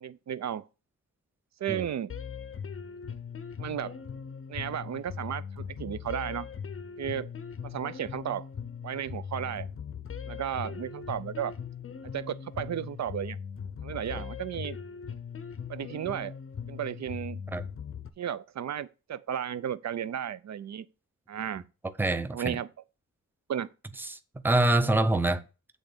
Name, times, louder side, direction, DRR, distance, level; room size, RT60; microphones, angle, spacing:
voice 1, 0.0-0.6 1.6-2.1 3.6-4.0 4.5-6.5 7.0-7.3 7.6-8.5 8.8-9.7 10.3-11.5 12.0-13.4 13.8-14.8 15.7-16.3 16.7-17.4 18.2-20.9 21.3-21.6 22.3-22.7 23.5-23.7, right 9 dB, 60° right, 0.5 m, -34 dB
sound 1, 2.1-18.1, left 7 dB, 45° left, 0.6 m, -40 dB
voice 2, 22.0-22.6 24.1-24.2 24.4-25.4, right 2 dB, 5° right, 0.5 m, -25 dB
8.2 x 3.8 x 6.6 m
wide cardioid pair, 170°, 31 cm